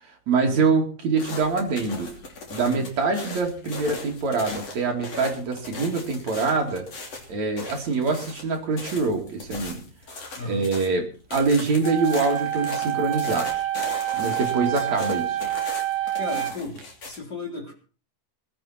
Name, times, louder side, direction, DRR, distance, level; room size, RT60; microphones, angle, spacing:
voice 1, 0.3-2.1 2.5-6.9 7.3-9.8 10.4-11.0 11.3-13.6 14.1-15.4, right 4 dB, 45° right, 1 dB, 3.3 m, -24 dB
sound 1, 1.2-10.9 11.3-17.2, left 3 dB, 40° left, 3.6 m, -38 dB
voice 2, 10.4-10.7 14.6-15.1 16.1-17.7, left 2 dB, 25° left, 0 dB, 3.7 m, -36 dB
sound 2, 11.8-16.8, right 13 dB, 90° right, 1.4 m, -27 dB
20.0 x 11.5 x 4.4 m, 0.38 s
omnidirectional pair, 5.2 m